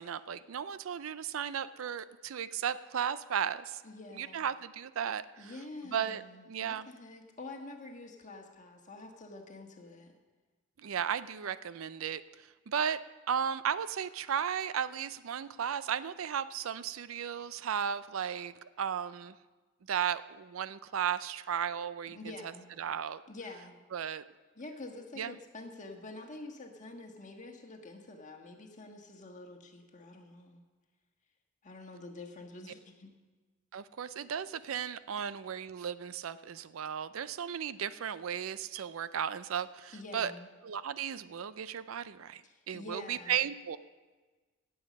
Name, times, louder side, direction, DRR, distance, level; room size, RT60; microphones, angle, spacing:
voice 1, 0.0-3.8 4.1-5.5 5.9-6.9 10.8-13.0 13.3-19.4 19.9-22.5 22.8-23.2 23.9-24.2 25.2-25.4 32.6-32.7 33.7-40.3 40.6-42.4 42.7-43.8, right 8 dB, 80° right, 15 dB, 0.5 m, -35 dB
voice 2, 3.8-4.5 5.4-10.1 22.1-22.7 23.3-23.8 24.6-30.6 31.6-33.1 39.9-40.5 42.4-43.4, left 2 dB, 40° left, 2 dB, 1.5 m, -47 dB
17.0 x 7.9 x 5.3 m, 1.3 s
head